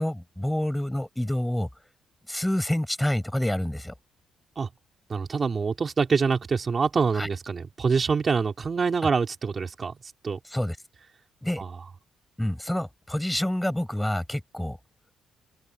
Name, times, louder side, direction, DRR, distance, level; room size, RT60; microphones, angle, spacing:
voice 1, 0.0-1.7 2.3-3.9 7.1-7.3 10.5-10.8 11.4-11.6 12.4-14.8, left 1 dB, 5° left, 7.5 m, -27 dB
voice 2, 5.1-9.9 10.2-10.4 11.6-11.7, right 5 dB, 40° right, 3.4 m, -25 dB
open air
cardioid pair, 90°, 0 cm